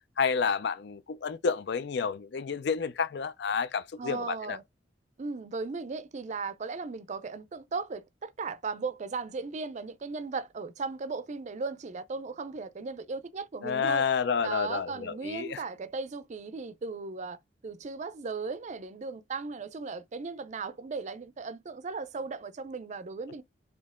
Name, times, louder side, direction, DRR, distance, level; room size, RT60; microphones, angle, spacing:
voice 1, 0.2-4.6 13.6-15.6, left 6 dB, 65° left, 0.4 m, -30 dB
voice 2, 4.0-4.6 5.2-14.1 14.4-17.4 17.6-23.4, right 4 dB, 40° right, 0.4 m, -37 dB
4.3 x 2.8 x 3.6 m
head